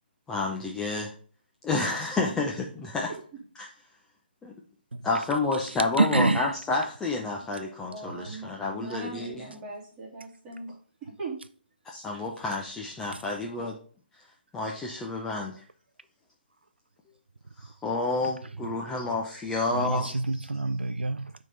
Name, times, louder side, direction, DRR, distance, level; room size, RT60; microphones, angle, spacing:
voice 1, 0.3-1.1 1.6-3.1 3.6-3.7 4.4-4.5 5.0-9.3 11.9-13.8 14.5-15.6 17.6-20.1, left 3 dB, 10° left, 0.7 m, -30 dB
voice 2, 2.2-2.5 3.1-3.4 7.9-11.4, right 3 dB, 15° right, 2.7 m, -40 dB
voice 3, 6.0-6.5 13.1-13.2 19.7-21.3, right 3 dB, 80° right, 0.4 m, -26 dB
9.0 x 3.8 x 4.0 m
figure-of-eight pair, 140°, 6 cm